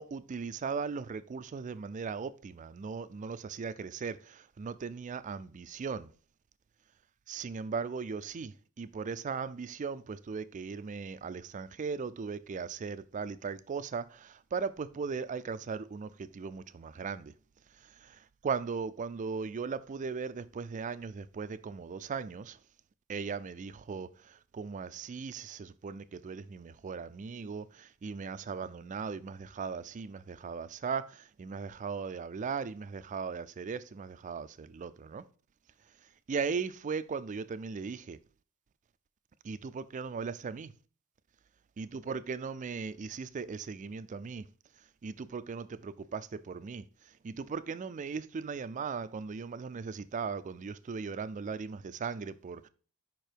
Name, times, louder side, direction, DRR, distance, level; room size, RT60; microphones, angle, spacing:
voice 1, 0.0-6.1 7.3-17.3 17.7-22.6 23.1-35.2 36.3-38.2 39.4-40.7 41.8-44.5 45.0-52.7, right 5 dB, 35° right, 0.3 m, -38 dB
5.4 x 4.5 x 4.9 m
head